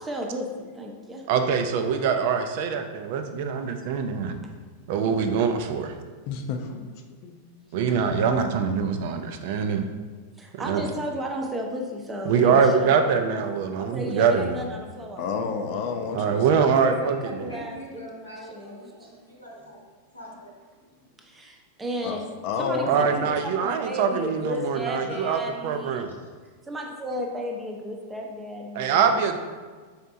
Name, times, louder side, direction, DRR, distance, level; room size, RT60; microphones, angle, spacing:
voice 1, 0.0-1.2 3.8-3.9 10.4-12.9 13.8-15.7 16.6-18.7 21.2-22.3 22.6-26.1 26.7-29.0, equal, 15° right, 1 dB, 0.6 m, -34 dB
voice 2, 1.3-4.4 4.9-5.9 7.7-9.9 10.6-10.8 12.3-14.6 16.1-17.5 22.9-26.1 28.7-29.4, right 6 dB, 50° right, 7 dB, 0.4 m, -24 dB
voice 3, 6.3-6.9 7.2-7.3 7.7-7.9 15.2-16.6 22.0-22.2 22.4-23.4, left 5 dB, 45° left, 4 dB, 0.4 m, -30 dB
voice 4, 16.7-19.8 20.1-20.5 25.0-25.4 25.7-25.8 26.1-26.3, equal, 85° left, -3 dB, 1.0 m, -42 dB
4.3 x 4.1 x 2.5 m, 1.5 s
figure-of-eight pair, 90°, 0 cm